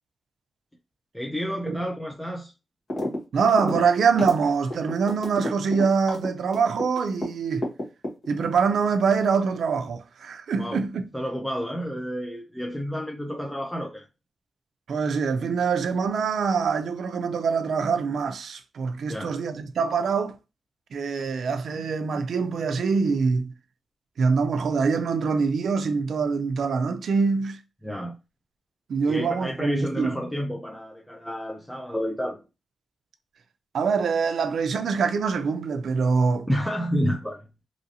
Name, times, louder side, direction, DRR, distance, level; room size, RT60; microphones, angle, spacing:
voice 1, 1.1-2.5 10.6-10.8 11.1-14.1 19.1-19.3 27.8-28.2 29.1-32.4 36.5-37.4, equal, 5° left, 0.4 m, -30 dB
sound 1, 2.9-3.2 3.4-7.3 7.6-8.5, left 1 dB, 45° left, 1.2 m, -30 dB
voice 2, 3.3-7.7 8.3-11.0 14.9-20.4 20.9-23.5 24.2-27.6 28.9-30.2 33.7-36.5, right 5 dB, 75° right, 0.4 m, -24 dB
3.0 x 2.5 x 2.8 m
wide cardioid pair, 165°, 0 cm